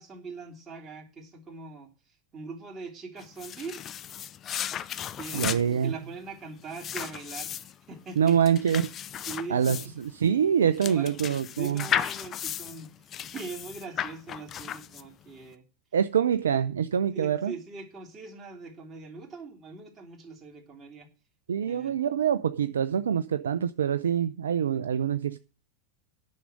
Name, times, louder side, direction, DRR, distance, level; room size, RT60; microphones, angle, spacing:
voice 1, 0.0-3.8 5.1-8.4 9.2-9.9 10.8-11.2 11.6-15.7 17.1-21.1 21.6-22.0, right 4 dB, 25° right, 3.2 m, -42 dB
sound 1, 3.2-15.3, left 10 dB, 35° left, 0.6 m, -35 dB
voice 2, 5.3-5.9 8.2-8.9 9.5-11.8 15.9-17.5 21.5-25.4, right 8 dB, 80° right, 0.5 m, -25 dB
10.0 x 6.4 x 7.9 m
hypercardioid pair, 90°, 0 cm